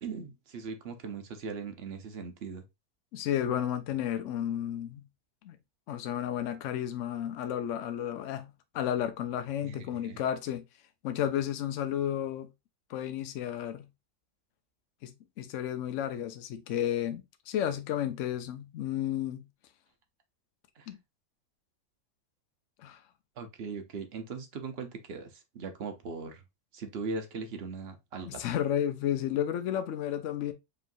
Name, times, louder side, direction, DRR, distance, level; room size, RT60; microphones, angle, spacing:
voice 1, 0.0-2.6 9.6-10.2 20.8-20.9 23.4-26.4 26.7-28.5, right 4 dB, 50° right, 0.8 m, -39 dB
voice 2, 3.1-5.0 5.4-5.6 5.9-10.6 11.0-12.5 12.9-13.9 15.0-15.1 15.4-19.4 20.9-21.0 22.8-23.0 28.3-30.5, left 10 dB, 60° left, 0.9 m, -32 dB
5.1 x 3.1 x 2.6 m
omnidirectional pair, 1.6 m